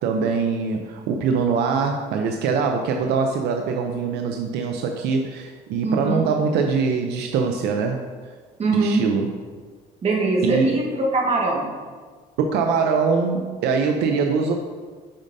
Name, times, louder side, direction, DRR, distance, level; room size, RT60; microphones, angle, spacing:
voice 1, 0.0-8.1 8.7-9.3 10.4-10.8 12.4-14.5, right 5 dB, 80° right, 4 dB, 0.5 m, -23 dB
voice 2, 5.8-6.2 8.6-9.0 10.0-11.7, right 2 dB, 35° right, -1 dB, 1.5 m, -22 dB
8.6 x 5.2 x 2.6 m, 1.5 s
cardioid pair, 110°, 17 cm